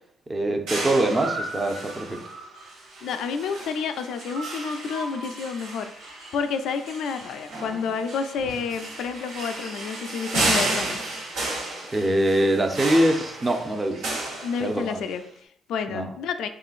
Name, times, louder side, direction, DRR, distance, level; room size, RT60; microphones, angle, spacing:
voice 1, 0.3-2.2 11.9-14.1 14.6-15.0 15.9-16.1, right 1 dB, 25° right, 5 dB, 0.5 m, -23 dB
sound 1, 0.7-15.1, right 2 dB, 90° right, 1.1 m, -32 dB
voice 2, 3.0-11.0 14.4-16.5, left 6 dB, 80° left, 8 dB, 0.3 m, -30 dB
3.7 x 3.7 x 2.4 m, 0.70 s
cardioid pair, 90°, 0 cm